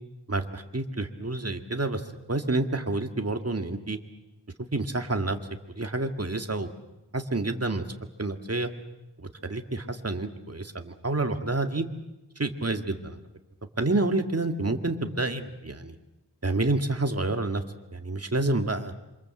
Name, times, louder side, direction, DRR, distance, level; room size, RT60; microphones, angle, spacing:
voice 1, 0.3-2.0 2.3-4.0 4.7-5.4 5.7-6.7 7.1-7.8 8.2-8.7 9.2-11.9 12.4-13.2 13.8-16.0 16.4-17.6 17.9-18.9, right 2 dB, 35° right, 6 dB, 2.1 m, -28 dB
27.0 x 25.5 x 7.8 m, 0.97 s
wide cardioid pair, 70°, 44 cm